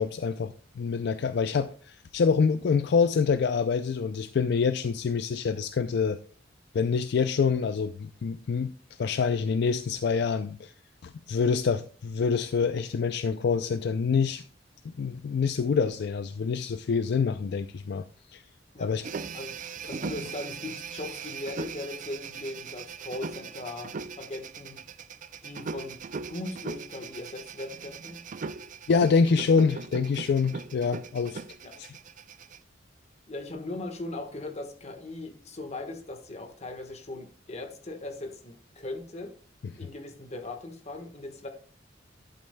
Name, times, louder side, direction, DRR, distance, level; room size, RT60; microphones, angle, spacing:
voice 1, 0.0-6.2 6.7-8.7 9.0-10.7 11.0-14.4 14.8-18.0 18.3-18.4 18.8-19.0 28.9-31.4 31.8-31.9, left 5 dB, 60° left, 0.4 m, -26 dB
sound 1, 19.0-32.6, right 5 dB, 45° right, 0.4 m, -39 dB
voice 2, 19.8-24.8 25.4-26.0 26.3-28.2 31.6-31.7 33.3-39.3 39.8-41.5, left 2 dB, 35° left, 1.3 m, -39 dB
11.0 x 8.6 x 2.2 m
head